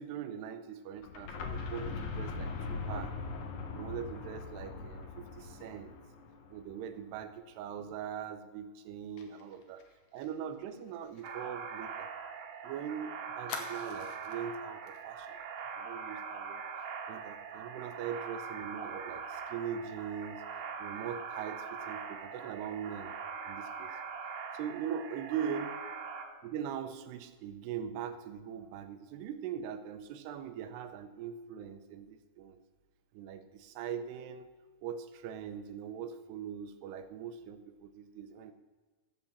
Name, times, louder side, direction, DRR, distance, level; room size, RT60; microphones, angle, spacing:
voice 1, 0.0-3.1 3.7-6.0 6.5-9.8 10.1-12.1 12.6-15.4 15.8-16.6 17.1-20.4 20.8-23.1 23.5-23.9 24.5-25.8 26.4-32.6 33.1-34.5 34.8-38.5, right 8 dB, 85° right, 9 dB, 2.8 m, -41 dB
sound 1, 1.0-6.8, left 4 dB, 65° left, 1.9 m, -40 dB
Fire, 9.2-12.6 12.9-13.0 13.5-14.4 14.9-15.0 15.4-15.6, left 5 dB, 85° left, 1.5 m, -47 dB
sound 2, 11.2-26.2, right 6 dB, 65° right, 2.3 m, -42 dB
13.5 x 5.1 x 7.1 m, 1.3 s
omnidirectional pair, 4.7 m